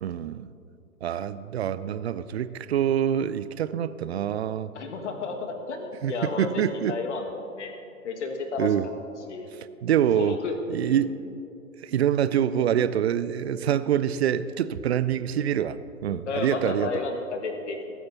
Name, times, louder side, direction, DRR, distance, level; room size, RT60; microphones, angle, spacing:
voice 1, 0.0-0.5 1.0-4.7 6.0-7.0 8.6-8.9 9.5-10.4 10.7-11.2 11.8-16.9, right 9 dB, 50° right, 15 dB, 0.6 m, -26 dB
voice 2, 4.8-7.3 7.5-7.7 8.0-8.7 9.3-9.5 10.2-11.0 16.3-17.8, left 4 dB, 55° left, 5 dB, 1.9 m, -32 dB
20.0 x 9.5 x 4.0 m, 2.6 s
figure-of-eight pair, 115°, 42 cm